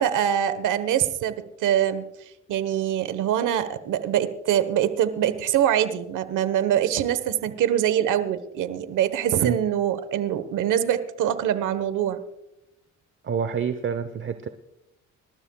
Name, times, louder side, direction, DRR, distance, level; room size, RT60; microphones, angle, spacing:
voice 1, 0.0-2.0 2.5-12.2, right 10 dB, 85° right, 12 dB, 1.2 m, -24 dB
voice 2, 13.2-14.5, right 7 dB, 40° right, 10 dB, 1.0 m, -27 dB
26.0 x 13.0 x 2.3 m, 0.88 s
cardioid pair, 90°, 30 cm